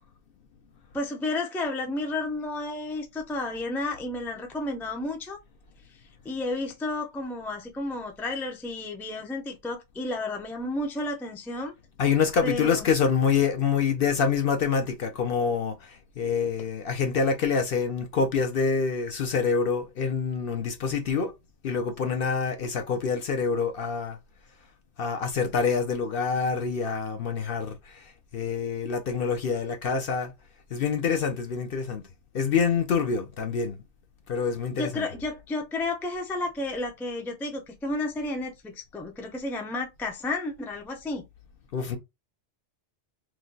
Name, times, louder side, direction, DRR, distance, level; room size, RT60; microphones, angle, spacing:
voice 1, 0.9-5.4 6.2-11.7 12.4-12.9 34.8-41.2, left 2 dB, 5° left, 0.4 m, -32 dB
voice 2, 12.0-21.3 21.6-24.2 25.0-28.0 28.3-30.3 30.7-32.0 32.3-33.8 34.3-35.1 41.7-42.0, left 5 dB, 60° left, 0.7 m, -26 dB
3.1 x 2.2 x 3.8 m
omnidirectional pair, 1.2 m